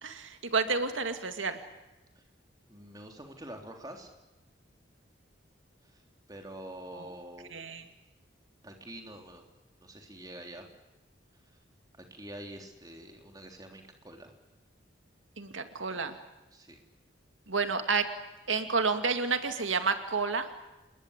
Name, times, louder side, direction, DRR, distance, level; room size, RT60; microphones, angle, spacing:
voice 1, 0.0-1.6 6.9-7.1 7.5-7.9 15.4-16.2 17.5-18.1 18.5-20.5, right 4 dB, 85° right, 8 dB, 2.3 m, -30 dB
voice 2, 2.7-4.1 5.8-6.0 6.3-7.5 8.6-9.4 9.8-10.6 12.1-14.3 16.5-16.8, right 1 dB, 20° right, 3 dB, 3.6 m, -46 dB
28.0 x 22.0 x 8.3 m, 1.0 s
head